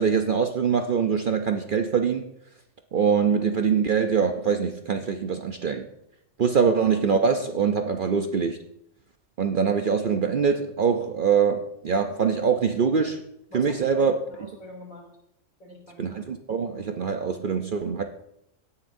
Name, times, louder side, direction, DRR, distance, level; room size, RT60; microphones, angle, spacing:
voice 1, 0.0-2.3 2.9-5.9 6.4-8.6 9.4-13.2 13.5-14.1 16.0-18.0, right 6 dB, 55° right, 0.6 m, -23 dB
voice 2, 13.5-15.1 15.6-16.2, equal, 75° left, 3.2 m, -44 dB
17.0 x 9.7 x 2.6 m
omnidirectional pair, 1.4 m